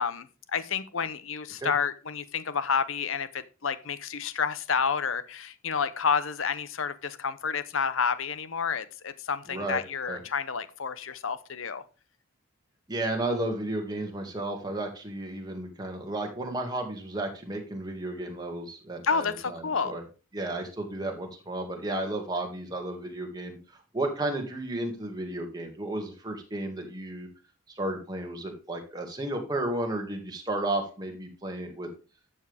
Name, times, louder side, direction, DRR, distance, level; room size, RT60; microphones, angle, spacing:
voice 1, 0.0-11.8 19.0-19.9, left 6 dB, 70° left, 14 dB, 0.8 m, -30 dB
voice 2, 9.5-10.2 12.9-20.0 20.3-27.3 27.7-31.9, right 1 dB, 20° right, 2 dB, 2.1 m, -33 dB
12.0 x 7.2 x 3.5 m, 0.33 s
head